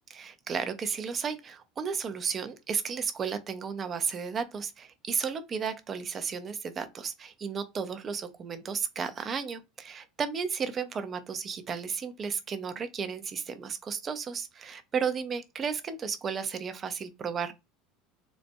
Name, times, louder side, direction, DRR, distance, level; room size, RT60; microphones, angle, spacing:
voice 1, 0.1-17.5, right 6 dB, 30° right, 0.6 m, -33 dB
4.1 x 2.4 x 2.2 m
figure-of-eight pair, 70°, 0 cm